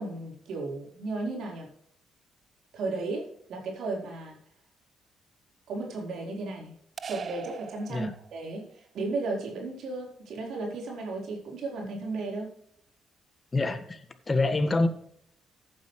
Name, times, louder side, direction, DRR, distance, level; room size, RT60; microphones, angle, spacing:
voice 1, 0.0-1.7 2.7-4.4 5.7-6.8 7.0-12.5, right 3 dB, 70° right, 0 dB, 4.1 m, -34 dB
sound 1, 7.0-8.6, right 6 dB, 45° right, 0.5 m, -41 dB
voice 2, 13.5-14.9, left 2 dB, 25° left, 9 dB, 1.6 m, -26 dB
15.0 x 9.3 x 3.2 m, 0.67 s
cardioid pair, 90°, 0 cm